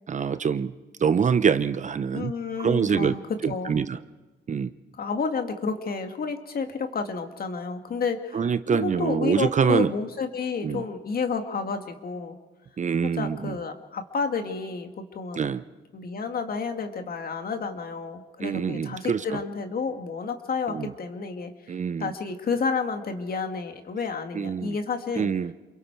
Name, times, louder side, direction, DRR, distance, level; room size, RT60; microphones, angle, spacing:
voice 1, 0.1-0.7 1.0-2.3 2.6-3.2 3.4-4.0 4.5-4.7 8.3-9.9 10.6-10.8 12.8-13.6 15.3-15.6 18.4-19.4 20.7-20.9 21.7-22.1 24.3-24.8 25.2-25.5, right 6 dB, 40° right, 13 dB, 0.7 m, -25 dB
voice 2, 2.1-3.2 3.5-3.8 5.0-8.5 8.7-12.4 13.0-15.6 15.9-21.5 22.0-25.3, left 5 dB, 50° left, 6 dB, 2.0 m, -30 dB
28.5 x 22.0 x 4.6 m, 1.2 s
cardioid pair, 90°, 20 cm